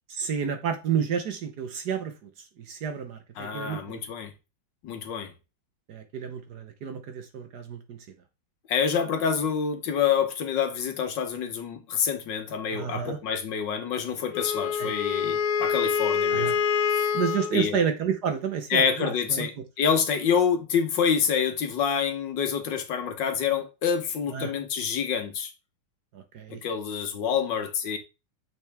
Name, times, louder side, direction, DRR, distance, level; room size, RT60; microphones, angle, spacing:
voice 1, 0.1-2.1 2.7-4.0 5.9-8.0 12.7-13.2 14.8-14.9 16.3-16.5 17.1-19.5 24.3-24.5 26.1-26.6, right 7 dB, 60° right, 1.4 m, -30 dB
voice 2, 3.4-4.3 4.8-5.3 8.7-16.5 17.0-17.1 17.5-17.8 18.7-25.5 26.5-28.0, left 7 dB, 65° left, 1.6 m, -27 dB
Wind instrument woodwind instrument, 14.3-17.6, left 7 dB, 85° left, 1.6 m, -26 dB
6.9 x 6.0 x 3.4 m
omnidirectional pair, 2.2 m